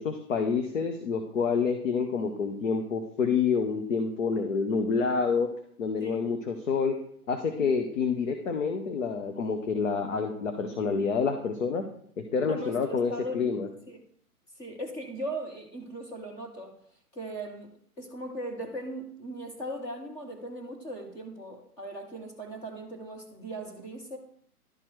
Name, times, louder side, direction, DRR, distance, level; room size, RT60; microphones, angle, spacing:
voice 1, 0.0-5.5 5.8-7.0 7.3-11.8 12.2-13.7, left 5 dB, 55° left, 6 dB, 1.0 m, -28 dB
voice 2, 6.0-6.3 12.5-13.4 13.9-14.0 14.6-16.8 17.1-17.7 18.0-24.2, right 1 dB, 5° left, 0 dB, 0.6 m, -38 dB
11.5 x 4.4 x 4.7 m, 0.64 s
figure-of-eight pair, 130°, 47 cm